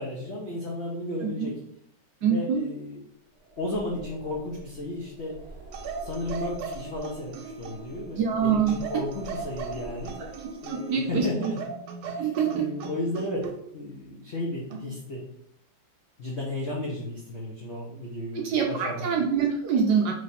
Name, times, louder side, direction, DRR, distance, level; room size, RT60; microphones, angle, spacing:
voice 1, 0.0-1.5 2.2-3.0 3.6-5.4 6.0-10.1 10.6-11.6 12.1-12.3 12.5-13.5 13.7-15.2 16.2-19.1, left 1 dB, 90° left, -3 dB, 0.5 m, -33 dB
voice 2, 2.2-2.6 8.2-8.7 10.2-10.3 10.7-11.5 12.2-12.7 18.3-20.1, right 6 dB, 70° right, 0 dB, 1.0 m, -25 dB
sound 1, 3.4-10.9, equal, 40° right, 1.1 m, -45 dB
sound 2, 5.7-8.0 8.7-11.0 11.4-13.6 14.7-15.0, right 5 dB, 85° right, 1.5 m, -38 dB
3.2 x 3.2 x 4.0 m, 0.71 s
omnidirectional pair, 2.3 m